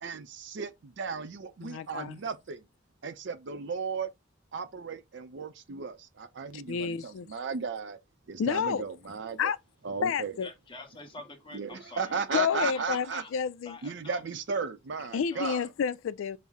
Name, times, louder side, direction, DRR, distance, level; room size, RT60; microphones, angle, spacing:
voice 1, 0.0-2.7 3.0-4.1 4.5-8.0 8.3-9.5 9.8-10.4 11.5-13.2 13.8-15.7, right 5 dB, 65° right, 0.5 m, -35 dB
voice 2, 1.6-2.1 6.5-7.3 8.4-8.8 9.4-9.6 10.0-10.5 12.3-13.1 13.3-13.8 15.1-16.4, left 7 dB, 90° left, 0.3 m, -30 dB
voice 3, 10.4-12.1 12.5-13.3 13.6-14.2 15.3-15.7, left 3 dB, 25° left, 0.9 m, -47 dB
5.5 x 2.0 x 3.5 m
head